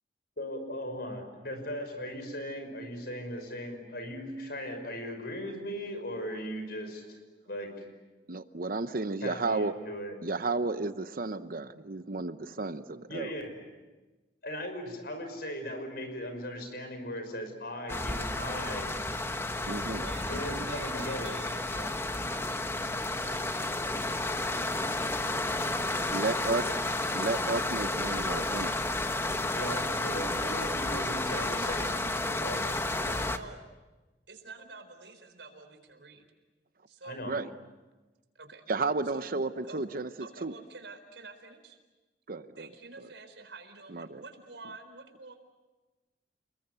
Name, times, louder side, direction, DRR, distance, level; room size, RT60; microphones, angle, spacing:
voice 1, 0.4-7.2 7.5-7.8 9.2-10.2 13.1-13.6 14.4-18.9 20.2-21.3 29.5-32.0 32.3-32.6 33.0-33.2 37.0-37.3, equal, 60° left, 7 dB, 5.8 m, -38 dB
voice 2, 8.3-9.7 10.2-13.3 19.7-20.0 26.1-26.7 27.1-28.8 37.3-37.5 38.7-40.1 40.4-40.5 42.3-42.7 43.9-44.2, right 3 dB, 50° right, 11 dB, 0.8 m, -32 dB
sound 1, 17.9-33.4, left 2 dB, 15° left, 1.1 m, -31 dB
voice 3, 19.7-26.6 29.5-29.9 30.5-30.8 31.3-31.5 32.5-32.8 33.3-33.6 34.3-36.3 36.9-37.2 38.3-38.6 39.0-39.3 39.6-39.8 40.2-41.8 42.6-45.4, right 3 dB, 85° right, 7 dB, 4.3 m, -49 dB
30.0 x 21.5 x 8.0 m, 1.2 s
head